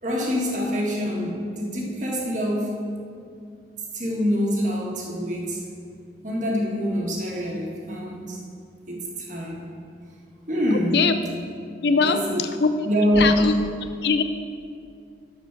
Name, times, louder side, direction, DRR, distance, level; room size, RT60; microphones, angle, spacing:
voice 1, 0.0-2.7 3.9-5.6 6.2-8.4 8.9-9.7 10.5-11.1 12.0-12.4 12.8-13.5, equal, 45° right, -2 dB, 1.6 m, -25 dB
voice 2, 11.8-12.7 13.2-13.5 14.0-14.2, left 5 dB, 65° left, 9 dB, 0.5 m, -21 dB
12.0 x 4.9 x 5.9 m, 2.3 s
head